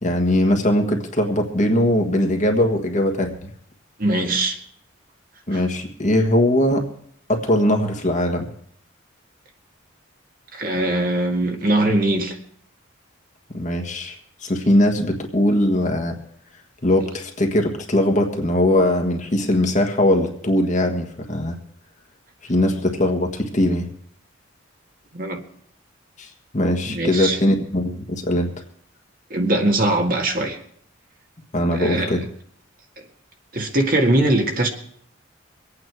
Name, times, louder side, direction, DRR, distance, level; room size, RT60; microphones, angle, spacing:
voice 1, 0.0-3.5 5.5-6.9 7.3-8.5 13.5-14.1 14.4-16.2 16.8-21.6 22.5-23.9 26.2-26.3 26.5-28.5 31.5-32.2, left 1 dB, 35° left, 3 dB, 1.5 m, -20 dB
voice 2, 4.0-4.6 5.5-5.6 10.5-12.4 25.1-25.4 26.8-27.4 29.3-30.6 31.7-32.1 33.5-34.7, right 1 dB, 45° right, 2 dB, 1.8 m, -21 dB
23.5 x 8.9 x 4.7 m, 0.66 s
head